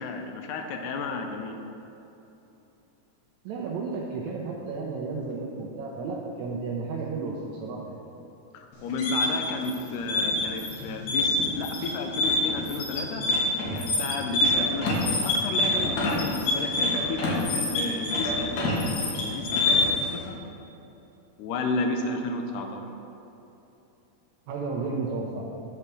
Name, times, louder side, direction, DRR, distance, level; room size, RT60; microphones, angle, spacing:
voice 1, 0.0-1.6 8.5-13.2 13.7-20.4 21.4-22.9, left 3 dB, 90° left, 4 dB, 2.2 m, -32 dB
voice 2, 3.5-8.0 24.5-25.5, right 4 dB, 75° right, -3 dB, 1.9 m, -33 dB
sound 1, 8.7-20.1, left 2 dB, 70° left, 2.7 m, -26 dB
7.2 x 4.4 x 6.7 m, 3.0 s
omnidirectional pair, 3.5 m